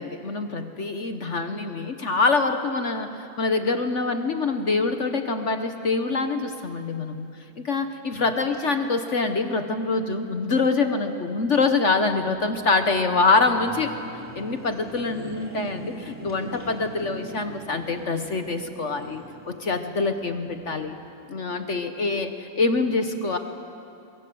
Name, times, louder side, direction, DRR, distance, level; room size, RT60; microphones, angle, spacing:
voice 1, 0.0-7.3 7.6-13.9 14.3-20.9 21.3-23.4, left 3 dB, 50° left, 7 dB, 0.9 m, -25 dB
sound 1, 11.4-21.1, equal, 5° right, 3.3 m, -43 dB
24.0 x 23.0 x 7.7 m, 2.7 s
omnidirectional pair, 2.3 m